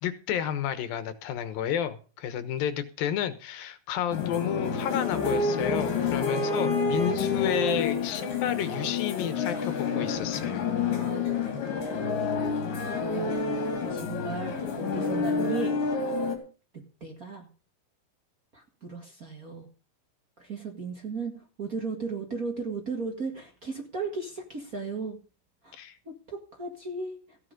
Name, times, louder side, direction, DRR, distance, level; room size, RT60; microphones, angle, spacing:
voice 1, 0.0-10.7 25.7-26.0, left 9 dB, 90° left, 12 dB, 3.0 m, -31 dB
sound 1, 4.1-16.4, left 4 dB, 70° left, 4.5 m, -28 dB
voice 2, 13.0-13.4 13.8-15.7 17.0-17.5 18.5-19.7 20.4-25.2 25.6-25.8 26.0-27.5, right 4 dB, 35° right, 2 dB, 1.6 m, -35 dB
15.0 x 9.7 x 5.2 m, 0.37 s
omnidirectional pair, 4.0 m